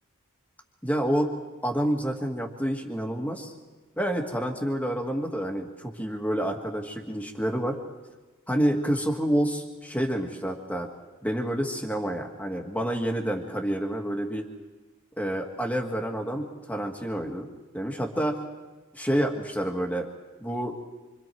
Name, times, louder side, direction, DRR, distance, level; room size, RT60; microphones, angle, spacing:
voice 1, 0.8-1.3 1.6-3.5 4.0-7.8 8.5-10.9 11.2-14.5 15.2-17.5 17.7-18.4 18.9-20.1 20.4-20.8, equal, 5° left, 3 dB, 1.9 m, -28 dB
27.0 x 26.0 x 4.6 m, 1.2 s
head